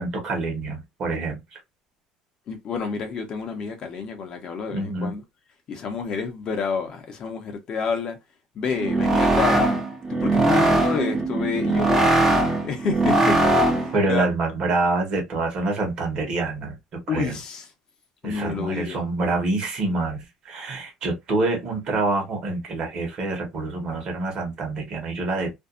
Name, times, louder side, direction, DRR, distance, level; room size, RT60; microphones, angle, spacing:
voice 1, 0.0-1.4 4.7-5.1 13.9-16.8 17.1-17.3 18.2-25.5, right 3 dB, 45° right, 1.1 m, -26 dB
voice 2, 2.5-5.2 5.7-8.2 8.5-9.8 10.1-12.4 12.6-13.4 13.7-14.3 17.1-17.7 18.2-19.0, left 5 dB, 40° left, 0.7 m, -29 dB
sound 1, 8.7-14.0, right 2 dB, 15° right, 0.6 m, -20 dB
2.6 x 2.3 x 2.4 m
cardioid pair, 140°, 2 cm